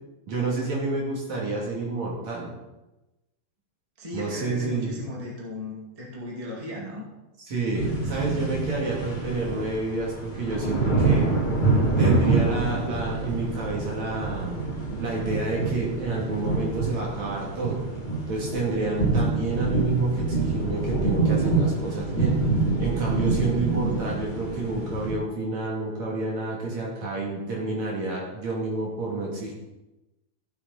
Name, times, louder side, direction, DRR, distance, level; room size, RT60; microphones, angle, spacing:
voice 1, 0.3-2.5 4.1-5.0 7.4-11.2 12.0-14.6 15.0-17.8 18.3-22.4 22.8-29.5, right 3 dB, 50° right, -3 dB, 3.7 m, -29 dB
voice 2, 4.0-7.0, left 1 dB, 10° right, -3 dB, 1.7 m, -36 dB
sound 1, 7.7-25.1, right 3 dB, 20° left, 1.5 m, -26 dB
15.0 x 8.2 x 4.2 m, 1.0 s
omnidirectional pair, 4.3 m